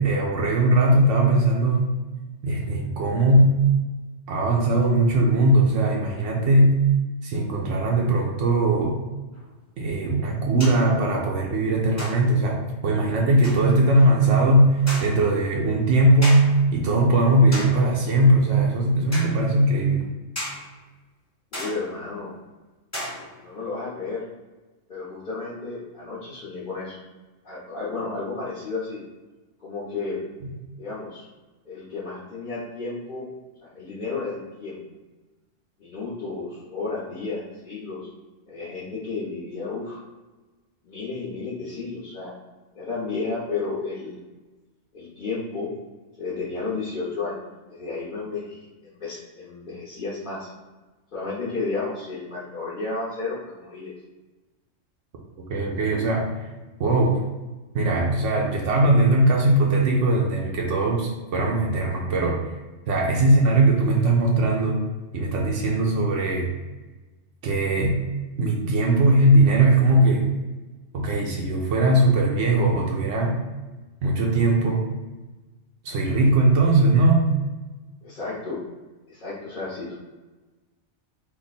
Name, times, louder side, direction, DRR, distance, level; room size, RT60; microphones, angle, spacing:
voice 1, 0.0-1.9 2.4-3.7 4.3-6.8 7.2-9.0 9.8-20.1 55.5-56.3 56.8-57.2 57.7-62.4 62.9-64.8 65.1-66.5 67.4-68.0 68.4-70.2 70.9-73.4 74.0-74.8 75.8-77.3, right 1 dB, 70° right, -1 dB, 0.9 m, -20 dB
sound 1, 9.3-9.4 10.6-10.9 12.0-12.5 13.4-13.7 14.9-15.3 16.2-16.7 17.5-18.0 19.1-19.4 20.4-20.7 21.5-22.0 22.9-23.5, equal, 15° left, 0.9 m, -34 dB
voice 2, 21.5-22.3 23.4-24.3 24.9-27.0 27.4-29.0 29.6-30.2 30.8-31.2 31.7-33.3 33.6-34.8 35.8-38.1 38.5-40.0 40.8-42.3 42.7-44.2 44.9-45.7 46.2-47.4 47.7-50.5 51.1-53.9 78.0-78.6 79.1-79.9, left 3 dB, 45° left, -9 dB, 1.0 m, -32 dB
3.4 x 2.2 x 4.0 m, 1.2 s
omnidirectional pair, 1.3 m